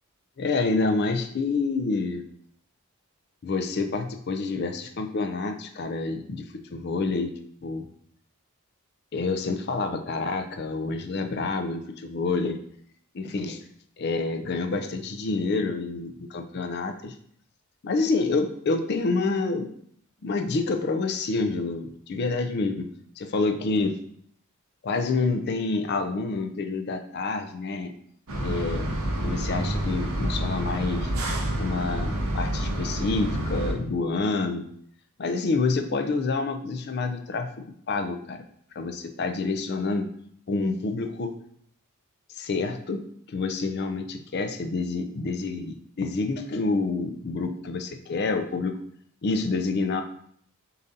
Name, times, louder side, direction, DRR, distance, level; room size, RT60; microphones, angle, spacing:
voice 1, 0.4-2.2 3.4-6.4 6.7-7.3 7.6-7.9 9.1-12.6 13.1-13.6 14.0-17.1 17.8-19.7 20.2-22.9 23.2-24.0 24.8-27.9 28.4-28.9 29.2-31.1 31.6-34.6 35.2-38.4 38.8-40.1 40.5-41.3 42.3-48.7 49.2-50.0, left 3 dB, 45° left, 7 dB, 0.4 m, -28 dB
sound 1, 28.3-33.7, right 1 dB, 75° right, 0.9 m, -28 dB
6.7 x 2.6 x 2.7 m, 0.66 s
head